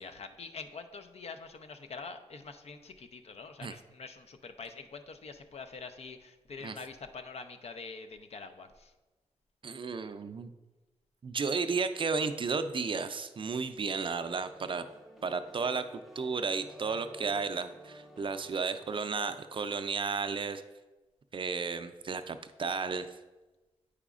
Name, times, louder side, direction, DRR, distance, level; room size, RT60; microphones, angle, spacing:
voice 1, 0.0-8.9, left 4 dB, 60° left, 8 dB, 0.5 m, -45 dB
voice 2, 9.6-10.5 11.2-14.9 15.2-15.9 16.2-20.6 21.3-23.1, right 5 dB, 45° right, 10 dB, 0.4 m, -33 dB
sound 1, 14.3-19.4, equal, ahead, 0.7 m, -52 dB
8.2 x 4.9 x 2.4 m, 1.2 s
cardioid pair, 50°, 12 cm